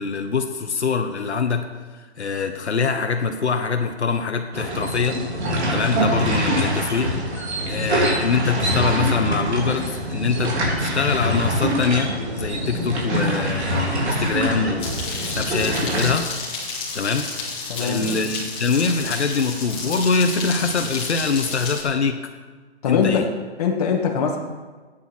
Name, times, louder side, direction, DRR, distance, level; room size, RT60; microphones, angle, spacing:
voice 1, 0.0-1.7 2.0-5.2 5.7-7.2 7.7-14.9 15.2-16.3 16.9-17.3 17.8-22.3 22.8-23.3, left 5 dB, 85° left, 5 dB, 1.4 m, -24 dB
sound 1, 4.5-16.1, equal, 80° right, 3.6 m, -24 dB
sound 2, 14.8-21.8, left 4 dB, 15° left, 2.6 m, -31 dB
voice 2, 17.7-18.3 22.8-23.3 23.6-24.4, left 6 dB, 35° left, 0 dB, 2.1 m, -22 dB
12.5 x 9.6 x 6.3 m, 1.3 s
hypercardioid pair, 155°, 33 cm